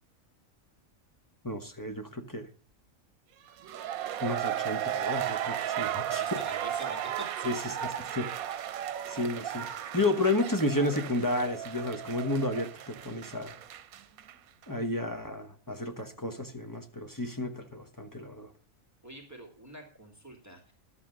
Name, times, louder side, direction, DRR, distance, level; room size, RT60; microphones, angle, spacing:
voice 1, 1.4-2.5 4.2-6.2 7.4-7.6 8.0-8.3 9.1-13.6 14.7-18.5, left 2 dB, 15° left, 1.1 m, -32 dB
sound 1, 3.5-14.3 14.6-14.7, right 10 dB, 90° right, 1.2 m, -35 dB
voice 2, 5.7-7.5 19.0-20.7, right 1 dB, 10° right, 2.5 m, -46 dB
12.0 x 8.3 x 6.1 m
omnidirectional pair, 1.4 m